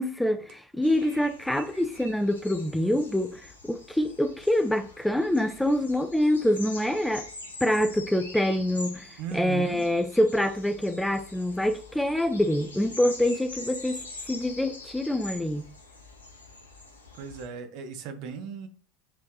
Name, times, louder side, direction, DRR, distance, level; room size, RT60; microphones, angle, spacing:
voice 1, 0.0-7.3 7.6-9.1 9.3-14.0 14.3-15.7, left 1 dB, 5° left, 0.6 m, -26 dB
sound 1, 0.8-17.4, left 2 dB, 85° left, 1.0 m, -44 dB
voice 2, 9.2-9.9 17.1-18.7, right 6 dB, 55° right, 1.1 m, -37 dB
9.0 x 3.5 x 3.2 m
figure-of-eight pair, 75°, 0 cm